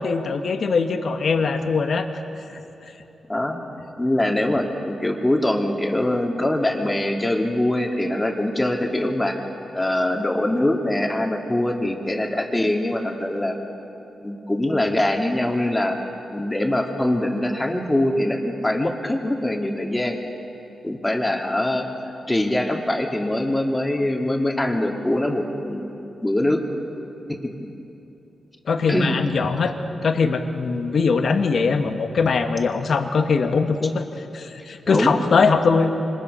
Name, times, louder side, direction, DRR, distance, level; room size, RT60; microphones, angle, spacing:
voice 1, 0.0-2.1 2.5-2.6 28.7-29.7 30.0-35.9, left 4 dB, 65° left, 6 dB, 1.4 m, -21 dB
voice 2, 4.0-9.3 9.7-13.5 14.2-16.0 16.3-20.2 20.8-21.8 22.3-25.9 26.2-26.6 27.3-27.5 28.9-29.1 34.9-35.2, left 1 dB, 15° left, 2 dB, 2.5 m, -23 dB
25.5 x 20.0 x 5.6 m, 3.0 s
cardioid pair, 55°, 0 cm